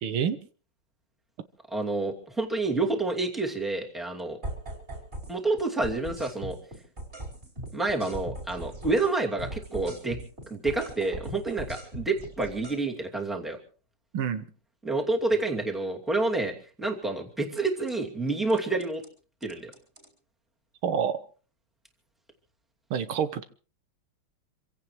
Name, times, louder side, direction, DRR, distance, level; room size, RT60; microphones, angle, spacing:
voice 1, 0.0-0.4 14.1-14.4 20.8-21.2 22.9-23.4, right 8 dB, 80° right, 11 dB, 1.9 m, -27 dB
voice 2, 1.7-4.4 5.3-6.6 7.7-10.2 10.5-13.6 14.8-19.0 19.4-19.7, right 3 dB, ahead, 0 dB, 2.4 m, -28 dB
sound 1, 4.4-5.3 5.6-9.1 9.4-12.8 17.6-17.9 18.5-19.1 19.4-20.1, right 1 dB, 30° right, 5.2 m, -39 dB
27.0 x 16.5 x 3.2 m, 0.38 s
omnidirectional pair, 2.3 m